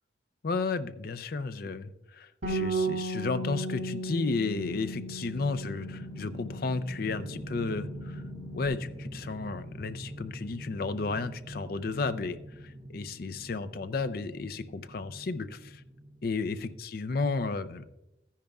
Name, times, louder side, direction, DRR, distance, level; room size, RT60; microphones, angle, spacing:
voice 1, 0.4-8.2 8.5-15.8 16.2-17.8, left 4 dB, 50° left, 12 dB, 0.5 m, -33 dB
Bass guitar, 2.4-8.7, right 2 dB, 80° right, 2.6 m, -36 dB
sound 1, 4.5-16.7, equal, 20° right, 0.9 m, -44 dB
14.0 x 10.0 x 2.3 m, 0.91 s
head